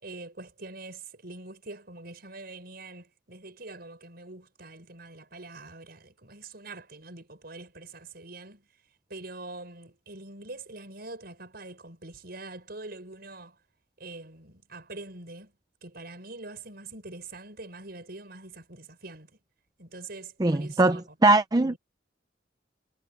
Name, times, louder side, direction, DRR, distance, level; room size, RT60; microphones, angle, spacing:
voice 1, 0.0-8.6 9.1-13.5 14.0-15.5 15.8-19.3 19.8-21.0 21.6-21.8, right 2 dB, 55° right, 6.1 m, -44 dB
voice 2, 20.4-21.7, right 2 dB, 20° right, 0.6 m, -21 dB
head